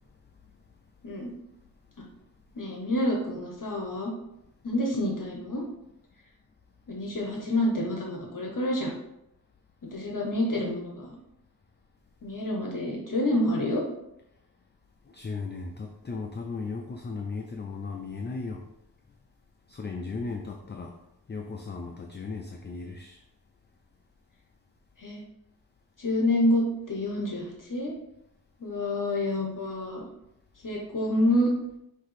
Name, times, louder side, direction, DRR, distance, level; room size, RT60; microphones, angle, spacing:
voice 1, 2.5-4.1 4.6-5.6 6.9-8.9 9.8-11.2 12.2-13.8 25.0-25.2 26.0-27.9 28.6-30.1 30.6-31.5, left 1 dB, 50° left, 0 dB, 0.8 m, -28 dB
voice 2, 15.1-18.6 19.7-20.9 21.3-23.2, left 4 dB, 30° left, 3 dB, 0.3 m, -36 dB
5.8 x 2.7 x 3.2 m, 0.83 s
wide cardioid pair, 100°, 41 cm